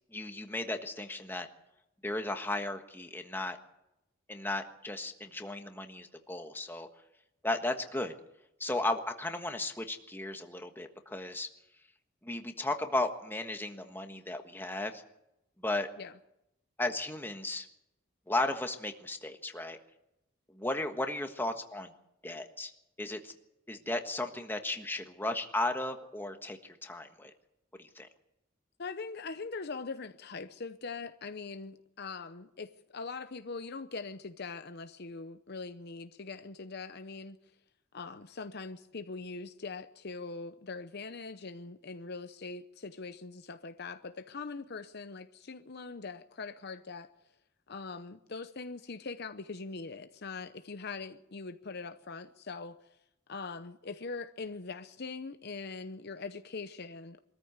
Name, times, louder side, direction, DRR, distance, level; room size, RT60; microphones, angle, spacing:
voice 1, 0.1-1.5 2.0-3.6 4.3-6.9 7.4-8.1 8.6-11.5 12.2-15.0 15.6-15.9 16.8-17.7 18.3-19.8 20.5-21.9 22.2-22.7 23.0-23.3 23.7-27.3 27.7-28.1, left 2 dB, 10° left, 1.4 m, -35 dB
voice 2, 28.8-37.4 37.9-47.1 47.7-52.8 53.3-57.2, left 4 dB, 50° left, 0.8 m, -42 dB
23.0 x 14.0 x 8.2 m
head